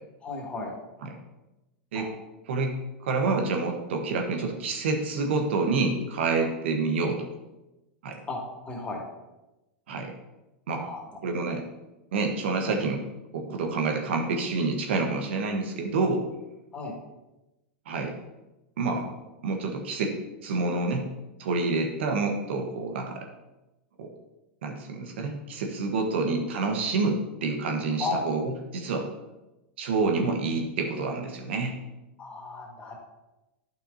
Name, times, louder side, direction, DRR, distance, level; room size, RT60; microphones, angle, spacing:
voice 1, 0.2-0.7 1.9-2.1 8.3-8.4 8.6-9.0 10.7-11.0 16.7-16.9 28.0-28.2 32.2-33.0, left 3 dB, 20° left, -2 dB, 2.4 m, -34 dB
voice 2, 2.5-7.3 8.0-8.2 9.9-10.1 10.7-10.8 11.2-11.6 12.1-13.0 13.3-16.2 17.9-18.1 18.8-19.2 19.4-21.1 21.4-23.3 24.0-24.1 24.6-29.1 29.8-31.8, right 3 dB, 75° right, 3 dB, 1.2 m, -28 dB
8.9 x 6.2 x 2.8 m, 0.98 s
hypercardioid pair, 115°, 6 cm